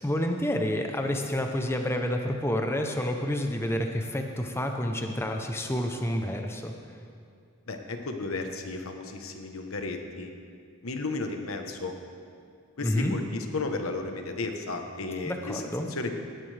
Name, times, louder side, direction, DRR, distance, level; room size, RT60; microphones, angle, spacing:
voice 1, 0.0-6.7 12.8-13.1 15.2-15.9, left 1 dB, 10° left, 4 dB, 0.8 m, -29 dB
voice 2, 7.7-10.3 10.8-11.9 12.8-15.6 15.9-16.1, left 3 dB, 85° left, 5 dB, 1.2 m, -33 dB
17.0 x 11.5 x 3.4 m, 2.4 s
head